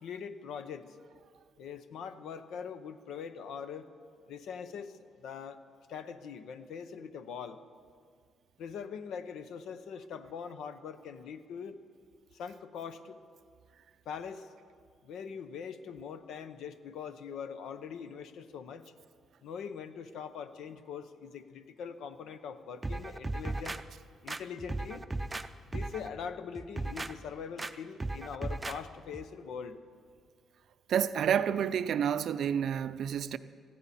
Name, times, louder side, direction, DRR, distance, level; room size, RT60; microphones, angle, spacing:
voice 1, 0.0-1.0 1.6-3.9 4.3-5.6 5.9-7.6 8.6-11.8 12.3-13.2 14.1-14.5 15.0-18.8 19.4-23.8 24.2-25.0 25.7-29.8, left 6 dB, 80° left, 0.7 m, -42 dB
sound 1, 22.8-23.8 24.3-25.5 25.7-26.1 26.6-27.1 27.6-27.7 28.0-28.8 29.1-29.3, right 2 dB, 20° right, 0.5 m, -36 dB
voice 2, 30.9-33.4, right 8 dB, 65° right, 0.5 m, -29 dB
18.0 x 14.5 x 4.2 m
cardioid pair, 90°, 0 cm